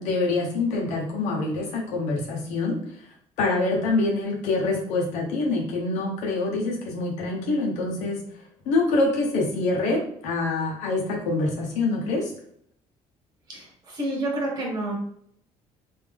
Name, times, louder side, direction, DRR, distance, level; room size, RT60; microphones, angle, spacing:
voice 1, 0.0-2.8 3.4-8.2 8.7-12.3, left 3 dB, 85° left, -1 dB, 0.8 m, -25 dB
voice 2, 13.5-15.0, right 1 dB, 35° right, -1 dB, 1.4 m, -29 dB
3.4 x 2.6 x 3.4 m, 0.69 s
cardioid pair, 140°, 12 cm